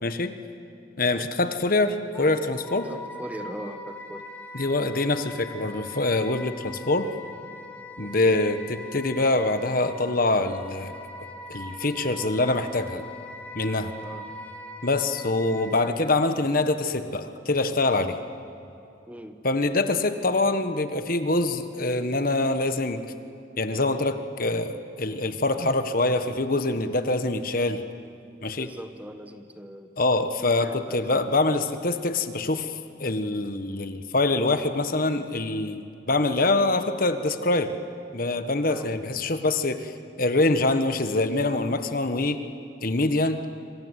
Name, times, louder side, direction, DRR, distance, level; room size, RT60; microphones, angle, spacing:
voice 1, 0.0-0.3 1.0-2.9 4.5-7.1 8.0-10.9 11.5-13.0 13.5-13.9 14.8-18.2 19.4-23.0 23.6-27.8 28.4-28.7 30.0-32.7 33.0-37.7 38.1-39.9 40.2-42.4 42.8-43.4, left 2 dB, 50° left, 9 dB, 1.4 m, -24 dB
Wind instrument woodwind instrument, 2.1-15.9, left 2 dB, 10° left, 2.2 m, -42 dB
voice 2, 2.9-4.2 8.0-8.4 14.0-14.2 19.1-19.4 28.6-29.9 30.6-31.0 38.7-38.9, equal, 10° right, 7 dB, 1.2 m, -39 dB
26.5 x 26.5 x 8.3 m, 2.7 s
head